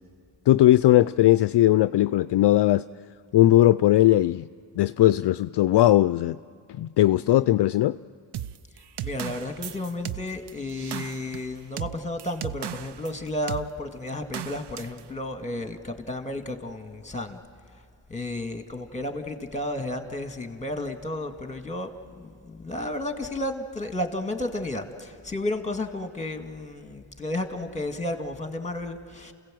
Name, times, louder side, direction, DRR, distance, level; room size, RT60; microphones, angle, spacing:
voice 1, 0.5-2.8 3.3-4.4 4.8-6.4 6.7-8.0, left 14 dB, 55° left, 15 dB, 0.5 m, -19 dB
sound 1, 8.3-13.1 13.5-13.7 14.3-15.0, right 11 dB, 55° right, 0.7 m, -36 dB
voice 2, 9.0-17.4 18.1-29.3, left 1 dB, 15° left, 6 dB, 2.0 m, -32 dB
28.5 x 16.5 x 7.7 m, 2.2 s
cardioid pair, 70°, 49 cm